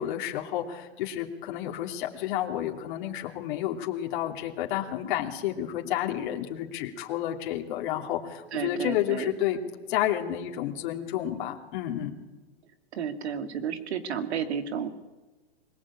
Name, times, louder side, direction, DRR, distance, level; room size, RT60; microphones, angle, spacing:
voice 1, 0.0-9.6 9.9-12.1, left 11 dB, 45° left, 1 dB, 3.0 m, -30 dB
voice 2, 8.5-9.3 12.9-14.9, right 7 dB, 75° right, 8 dB, 2.9 m, -32 dB
25.0 x 21.5 x 8.8 m, 1.2 s
hypercardioid pair, 150°, 33 cm